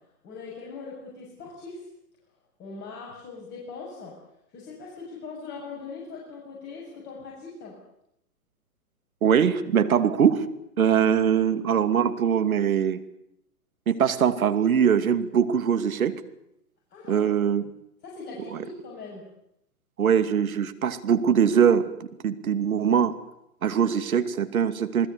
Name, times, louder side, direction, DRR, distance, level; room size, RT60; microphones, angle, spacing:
voice 1, 0.2-1.9 2.6-4.2 4.5-7.8 11.3-11.4 16.9-17.3 18.0-19.2, left 4 dB, 20° left, -4 dB, 7.6 m, -40 dB
voice 2, 9.2-10.4 10.8-13.0 13.9-16.2 17.1-17.6 18.5-18.6 20.0-21.9 22.2-23.1 23.6-25.1, right 8 dB, 65° right, 9 dB, 2.7 m, -22 dB
28.5 x 20.0 x 8.4 m, 0.79 s
figure-of-eight pair, 125°, 45 cm